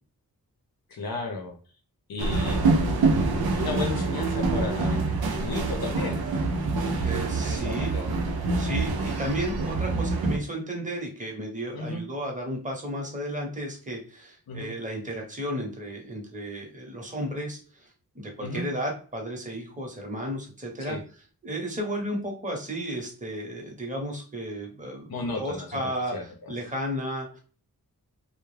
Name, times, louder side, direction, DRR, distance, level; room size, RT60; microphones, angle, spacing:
voice 1, 0.9-1.5 2.1-2.6 3.5-5.1 5.4-6.2 7.4-8.1 11.7-12.0 14.5-14.7 18.4-18.6 20.8-21.0 25.1-25.8 26.1-26.2, left 3 dB, 80° left, 2 dB, 0.6 m, -33 dB
sound 1, 2.2-10.4, right 3 dB, 90° right, 0.6 m, -26 dB
voice 2, 7.0-7.9 8.6-21.0 21.4-25.1 25.4-27.4, equal, 20° right, -1 dB, 0.9 m, -33 dB
2.3 x 2.1 x 3.2 m, 0.40 s
wide cardioid pair, 65°, 36 cm